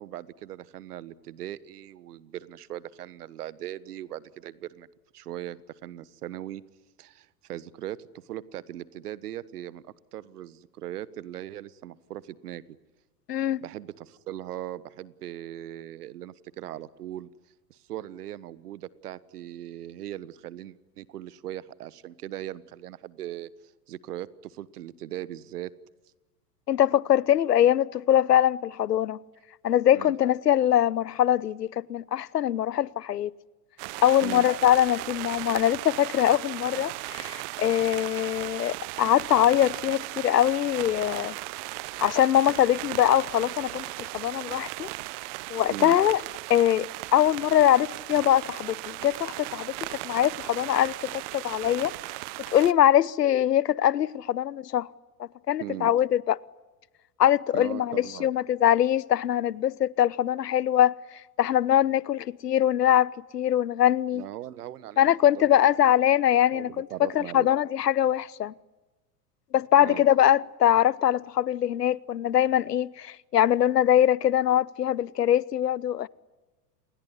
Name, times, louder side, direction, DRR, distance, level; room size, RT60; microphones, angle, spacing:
voice 1, 0.0-4.9 5.1-6.6 7.0-8.0 8.3-9.8 10.1-12.6 13.6-17.3 17.7-23.5 23.9-25.7 29.9-30.1 34.2-34.5 45.7-46.0 55.6-55.9 57.5-58.3 64.1-65.6 66.5-67.5 69.8-70.1, right 12 dB, 70° right, 1.4 m, -39 dB
voice 2, 13.3-13.6 26.7-29.2 29.6-33.3 34.0-41.3 42.0-44.9 45.5-46.2 46.5-51.9 52.5-54.9 55.2-56.4 57.2-60.9 61.4-64.3 65.0-66.9 67.1-68.5 69.5-76.1, left 11 dB, 80° left, 0.9 m, -23 dB
sound 1, 33.8-52.7, right 23 dB, 50° right, 0.9 m, -37 dB
29.0 x 20.5 x 9.9 m
hypercardioid pair, 95°, 47 cm